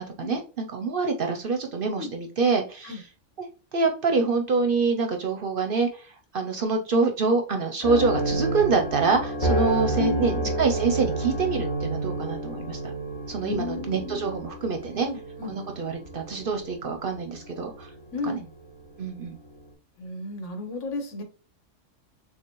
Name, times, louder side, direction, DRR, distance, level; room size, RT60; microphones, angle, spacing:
voice 1, 0.0-3.0 3.7-12.8 13.3-15.1 15.5-17.9 18.2-18.4 19.0-19.3, right 4 dB, 55° right, 4 dB, 0.7 m, -26 dB
sound 1, 7.8-18.3 18.7-18.8 19.3-19.5, right 2 dB, 45° left, 2.0 m, -30 dB
voice 2, 9.9-10.5 13.4-14.3 15.1-15.6 18.1-18.5 20.0-21.2, left 3 dB, 75° left, 4 dB, 1.4 m, -33 dB
6.3 x 2.2 x 3.0 m, 0.36 s
omnidirectional pair, 1.3 m